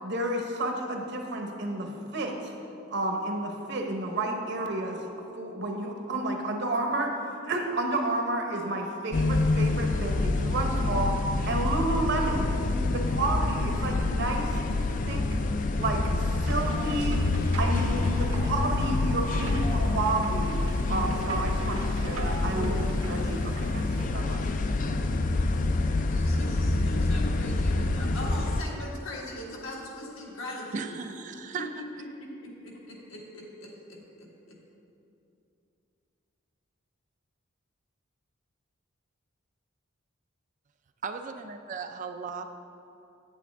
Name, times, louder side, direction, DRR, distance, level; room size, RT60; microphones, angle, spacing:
voice 1, 0.0-2.5 2.9-5.0 5.3-7.1 7.4-11.1 11.5-12.5 12.9-14.6 15.1-15.2 15.8-24.4, right 2 dB, 55° right, 2 dB, 0.9 m, -31 dB
sound 1, 9.1-28.6, left 2 dB, 40° left, 0.4 m, -27 dB
sound 2, 16.4-24.1, right 1 dB, 85° right, 1.3 m, -40 dB
voice 2, 26.1-31.0 31.5-31.6 32.2-34.6, left 1 dB, 75° left, -3 dB, 1.6 m, -40 dB
voice 3, 30.7-31.7 41.0-42.4, right 5 dB, 40° right, 7 dB, 0.4 m, -36 dB
8.6 x 8.5 x 3.4 m, 2.7 s
head